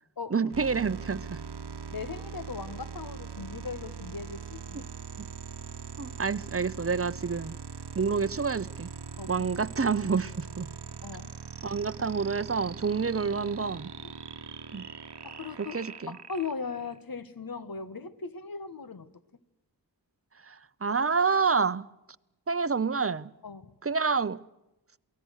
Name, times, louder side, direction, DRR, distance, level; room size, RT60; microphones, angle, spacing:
voice 1, 0.3-1.4 6.0-7.5 7.9-8.9 9.3-10.7 11.6-13.9 14.7-14.8 15.6-16.1 20.5-21.9 22.5-23.3 23.8-24.4, right 5 dB, 35° right, 0.8 m, -28 dB
sound 1, 0.5-17.0, right 6 dB, 80° right, 1.1 m, -41 dB
voice 2, 1.9-4.9 9.2-9.3 11.0-11.3 12.0-12.1 14.0-14.1 15.2-15.8 16.1-19.1 23.4-23.7, left 5 dB, 60° left, 1.5 m, -38 dB
28.5 x 19.0 x 6.5 m
wide cardioid pair, 55°, 40 cm